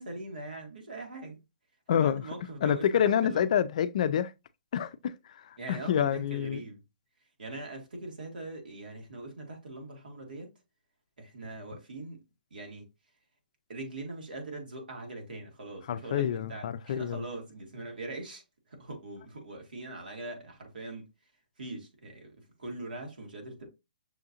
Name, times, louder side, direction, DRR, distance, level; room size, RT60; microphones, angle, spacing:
voice 1, 0.0-1.4 1.9-3.6 5.6-6.8 7.4-10.5 11.2-12.2 12.5-12.9 13.7-18.4 18.7-21.0 21.6-22.3 22.6-23.7, right 2 dB, 90° right, 1.8 m, -41 dB
voice 2, 1.9-2.2 2.6-4.3 4.7-5.2 5.7-6.6 15.9-17.2, left 9 dB, 50° left, 0.3 m, -27 dB
6.2 x 2.6 x 2.8 m
hypercardioid pair, 155°, 5 cm